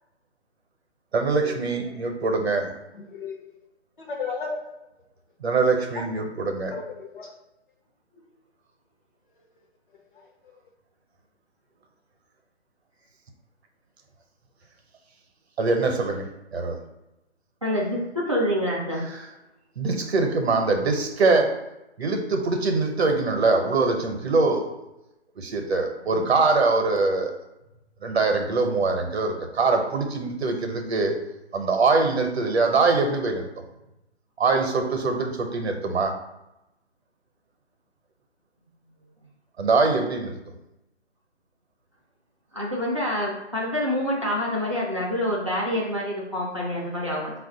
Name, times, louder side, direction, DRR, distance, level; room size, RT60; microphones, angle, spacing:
voice 1, 1.1-2.7 5.4-6.7 15.6-16.2 16.5-16.7 19.2-19.3 19.8-21.6 22.0-24.7 25.4-27.3 28.0-31.2 31.5-33.5 34.4-36.2 39.6-40.4, right 3 dB, 65° right, 4 dB, 0.8 m, -23 dB
voice 2, 3.1-3.6 4.0-4.6 6.0-6.1 6.6-7.3 10.1-10.3, left 4 dB, 45° left, 2 dB, 0.7 m, -34 dB
voice 3, 17.6-19.1 26.0-26.4 42.5-47.3, equal, 30° right, -5 dB, 0.4 m, -27 dB
4.0 x 2.4 x 3.8 m, 0.93 s
hypercardioid pair, 160°, 34 cm